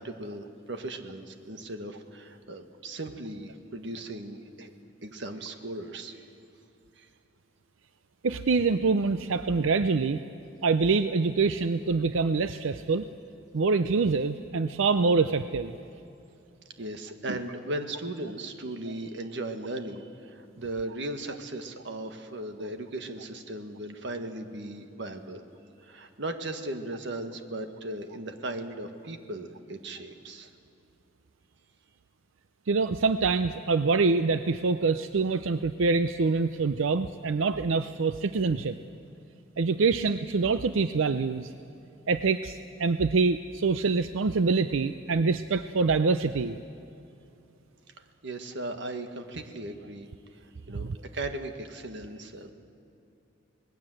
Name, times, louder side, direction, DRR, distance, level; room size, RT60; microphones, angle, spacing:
voice 1, 0.0-4.7 5.0-6.2 7.0-7.1 16.6-25.4 25.8-30.5 48.2-50.1 50.3-52.5, right 1 dB, 65° right, 7 dB, 1.6 m, -37 dB
voice 2, 8.2-10.2 10.6-13.1 13.5-15.7 17.3-17.4 32.7-38.8 39.6-41.5 42.1-46.6 50.8-51.0, right 4 dB, 90° right, 11 dB, 0.6 m, -25 dB
26.0 x 19.5 x 7.8 m, 2.8 s
head